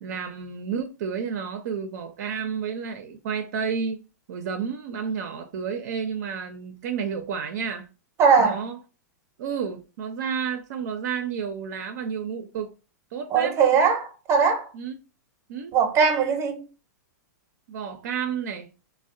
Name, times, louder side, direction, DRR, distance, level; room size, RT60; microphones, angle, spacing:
voice 1, 0.0-4.0 4.3-7.9 8.4-8.8 9.4-12.7 13.1-13.6 14.7-15.0 15.5-15.8 17.7-18.7, right 6 dB, 60° right, 0.4 m, -31 dB
voice 2, 8.2-8.6 13.3-14.7 15.7-16.6, right 6 dB, 30° right, 0.7 m, -20 dB
3.4 x 2.0 x 2.5 m
hypercardioid pair, 115°, 10 cm